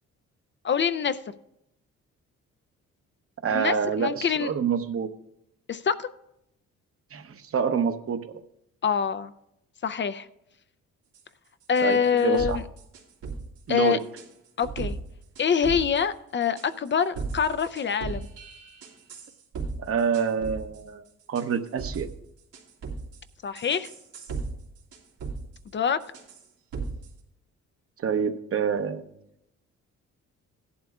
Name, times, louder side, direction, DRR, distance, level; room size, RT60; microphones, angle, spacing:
voice 1, 0.6-1.2 3.5-4.5 5.7-6.1 8.8-9.3 9.8-10.3 11.7-12.6 13.7-14.0 14.6-15.0 15.4-18.3 23.4-23.9 25.7-26.0, left 7 dB, 40° left, 13 dB, 0.5 m, -25 dB
voice 2, 3.4-5.1 7.1-8.3 11.8-12.6 13.7-14.0 19.8-22.1 28.0-29.1, right 6 dB, 50° right, 8 dB, 0.9 m, -27 dB
sound 1, 11.1-11.2 11.7-11.8 12.2-13.4 14.0-14.3 14.6-14.9 15.4-16.0 16.6-16.9 17.1-19.7 20.0-20.8 21.3-22.1 22.5-23.2 23.5-24.5 24.8-25.4 26.0-26.4 26.7-27.1, right 4 dB, 90° right, 2.3 m, -35 dB
16.5 x 11.0 x 2.4 m, 0.81 s
cardioid pair, 90°, 30 cm